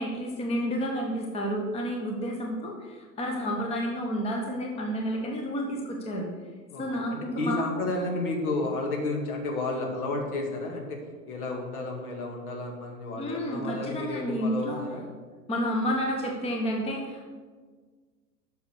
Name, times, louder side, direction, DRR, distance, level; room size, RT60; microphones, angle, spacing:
voice 1, 0.0-6.3 6.8-7.8 13.2-14.8 15.5-17.3, equal, 10° left, 1 dB, 1.0 m, -30 dB
voice 2, 7.1-15.0, left 2 dB, 60° left, 1 dB, 2.3 m, -32 dB
8.0 x 6.1 x 6.7 m, 1.5 s
figure-of-eight pair, 105°, 50 cm